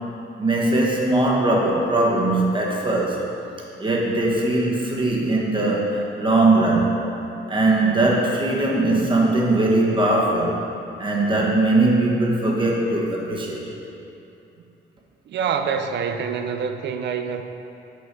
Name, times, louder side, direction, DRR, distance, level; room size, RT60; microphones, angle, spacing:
voice 1, 0.4-3.2 3.8-7.1 7.5-10.6 11.0-13.8, right 2 dB, 25° right, -3 dB, 1.3 m, -20 dB
voice 2, 15.3-17.4, right 6 dB, 65° right, 7 dB, 0.5 m, -26 dB
6.4 x 5.4 x 4.7 m, 2.8 s
cardioid pair, 90°, 20 cm